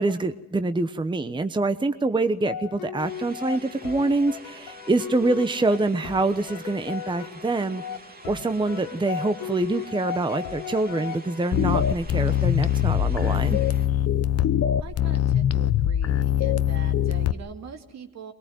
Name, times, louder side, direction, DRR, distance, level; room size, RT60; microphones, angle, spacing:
voice 1, 0.0-7.8 8.3-13.6, right 2 dB, 15° right, 10 dB, 1.0 m, -25 dB
sound 1, 2.5-11.7, left 9 dB, 85° left, 1.4 m, -37 dB
sound 2, 3.0-13.9, right 2 dB, 30° right, 2.6 m, -47 dB
sound 3, 11.5-17.3, left 11 dB, 55° left, 0.8 m, -22 dB
voice 2, 14.8-18.3, right 5 dB, 60° right, 6 dB, 2.5 m, -42 dB
22.0 x 19.0 x 9.3 m, 0.87 s
cardioid pair, 90°, 30 cm